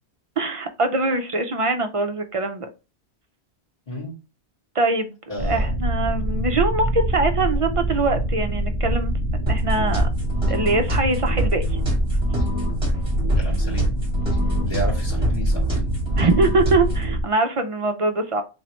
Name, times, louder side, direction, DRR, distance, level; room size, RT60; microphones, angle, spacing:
voice 1, 0.4-2.7 4.7-5.2 5.4-9.1 9.5-10.1 10.5-11.8 16.2-18.4, right 2 dB, 45° right, 0.4 m, -23 dB
voice 2, 5.3-5.7 13.4-13.9 14.6-15.9, equal, 35° left, 2.3 m, -32 dB
sound 1, 5.4-17.2, equal, 20° left, 1.0 m, -24 dB
sound 2, 9.5-17.1, right 1 dB, 30° right, 1.5 m, -27 dB
3.6 x 3.1 x 2.9 m
omnidirectional pair, 1.1 m